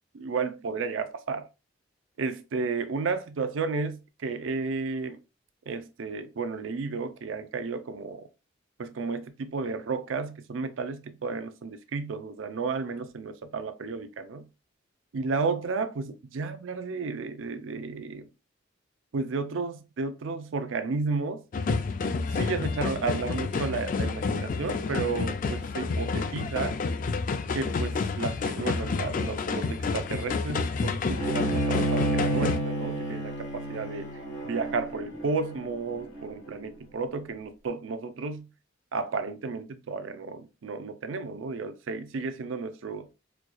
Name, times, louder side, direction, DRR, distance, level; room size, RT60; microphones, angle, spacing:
voice 1, 0.1-1.5 2.2-5.2 5.7-8.3 8.8-14.5 15.1-18.3 19.1-21.4 22.3-26.8 27.5-34.1 34.4-38.5 38.9-43.1, right 4 dB, 85° right, 0.5 m, -32 dB
sound 1, 21.5-32.6, left 4 dB, 45° left, 0.3 m, -29 dB
Bowed string instrument, 31.2-36.5, right 1 dB, 90° left, 1.3 m, -30 dB
4.4 x 2.3 x 2.4 m
head